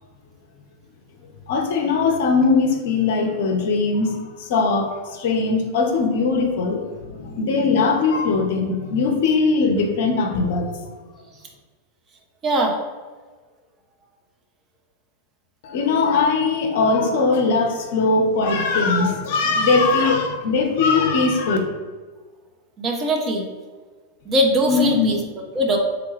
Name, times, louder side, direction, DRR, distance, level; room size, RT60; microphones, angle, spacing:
voice 1, 1.5-10.7 15.6-21.6 24.7-25.1, left 4 dB, 55° left, 2 dB, 0.5 m, -20 dB
voice 2, 12.4-12.8 22.8-23.5 24.3-25.2 25.5-25.8, right 1 dB, 25° right, 1 dB, 0.6 m, -20 dB
3.7 x 2.2 x 3.1 m, 1.4 s
figure-of-eight pair, 90°, 0 cm